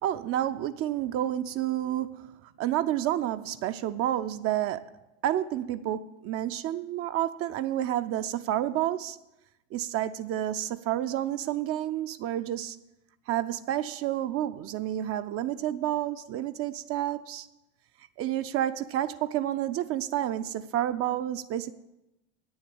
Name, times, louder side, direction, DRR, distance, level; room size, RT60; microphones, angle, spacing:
voice 1, 0.0-4.9 5.2-9.2 9.7-12.8 13.3-17.5 18.2-21.7, right 12 dB, 35° right, 0.5 m, -30 dB
9.1 x 7.2 x 8.6 m
hypercardioid pair, 80°, 38 cm